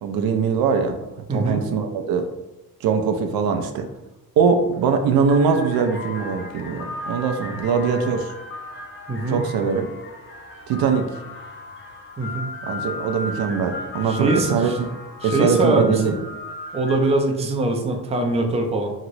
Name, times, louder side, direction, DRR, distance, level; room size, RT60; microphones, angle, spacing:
voice 1, 0.0-1.0 1.3-2.3 2.8-3.9 4.4-8.3 9.3-9.9 10.7-11.1 12.6-14.7 15.2-16.1, right 6 dB, 75° right, 6 dB, 0.5 m, -21 dB
voice 2, 1.3-1.6 9.1-9.4 12.2-12.5 14.1-14.8 15.2-16.2 16.7-18.9, right 2 dB, 20° right, 3 dB, 0.4 m, -22 dB
sound 1, 4.6-4.8 5.2-17.3, left 2 dB, 35° left, 0.5 m, -35 dB
3.0 x 2.9 x 2.6 m, 0.97 s
cardioid pair, 95°, 37 cm